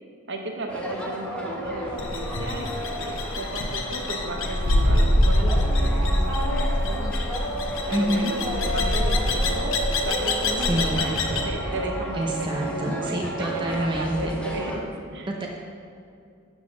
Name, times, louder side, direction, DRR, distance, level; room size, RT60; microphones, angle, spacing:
voice 1, 0.3-7.4 7.9-9.7 10.0-15.3, right 1 dB, 55° right, 2 dB, 1.0 m, -34 dB
sound 1, 0.7-14.8, right 1 dB, 5° left, 0.9 m, -33 dB
sound 2, 2.0-11.5, left 1 dB, 65° left, 0.8 m, -25 dB
sound 3, 7.2-13.7, equal, 85° right, 2.1 m, -45 dB
voice 2, 7.9-8.3 10.6-11.0 12.2-14.4 15.3-15.5, right 1 dB, 20° right, -1 dB, 0.6 m, -27 dB
11.0 x 3.9 x 6.2 m, 2.5 s
head